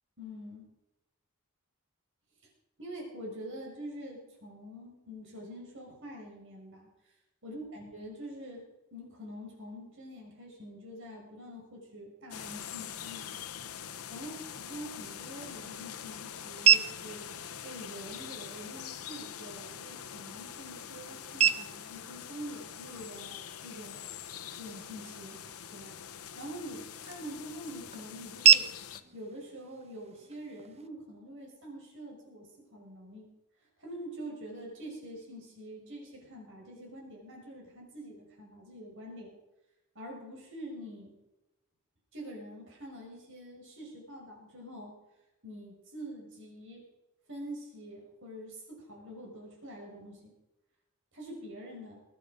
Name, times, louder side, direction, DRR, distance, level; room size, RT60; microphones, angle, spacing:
voice 1, 0.2-0.7 2.8-6.9 7.4-8.6 8.9-13.3 14.1-17.4 17.6-24.0 24.6-25.4 25.7-26.0 26.4-28.7 29.1-33.3 33.8-39.3 39.9-41.2 42.1-44.9 45.4-46.9 47.3-50.3 51.1-52.0, equal, 60° right, 0 dB, 5.9 m, -45 dB
sound 1, 12.3-29.0, left 9 dB, 80° left, 0.9 m, -44 dB
sound 2, 14.9-30.9, right 7 dB, 30° right, 0.8 m, -32 dB
22.5 x 10.0 x 5.2 m, 0.97 s
head